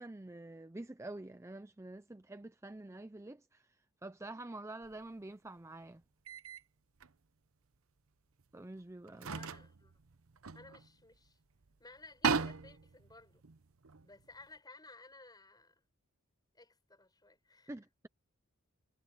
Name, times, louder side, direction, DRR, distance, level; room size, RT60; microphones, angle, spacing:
voice 1, 0.0-6.0 8.5-9.4 17.7-18.1, right 2 dB, 15° right, 0.5 m, -47 dB
sound 1, 4.8-5.0 6.3-6.6 7.0-7.1 8.4-8.5 9.1-11.3 11.6-11.7 12.0-14.5, right 5 dB, 70° right, 0.8 m, -38 dB
voice 2, 9.3-9.9 10.5-11.4 11.8-13.4 14.0-15.8 16.5-17.7, left 3 dB, 20° left, 7.2 m, -57 dB
head